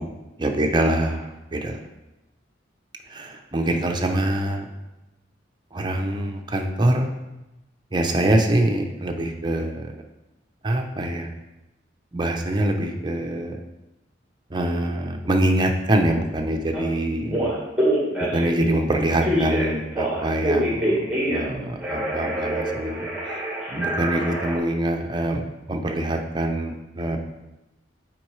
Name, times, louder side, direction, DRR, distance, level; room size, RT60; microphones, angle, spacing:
voice 1, 0.4-1.8 3.1-4.7 5.7-7.1 7.9-9.9 10.6-11.3 12.1-13.6 14.5-17.5 18.3-23.0 23.7-25.4 25.7-27.2, right 1 dB, 25° right, 3 dB, 0.6 m, -24 dB
Telephone, 16.7-16.8 17.3-18.6 19.2-21.5 21.8-24.6, right 1 dB, 5° right, 1.5 m, -25 dB
7.5 x 4.6 x 3.2 m, 0.99 s
head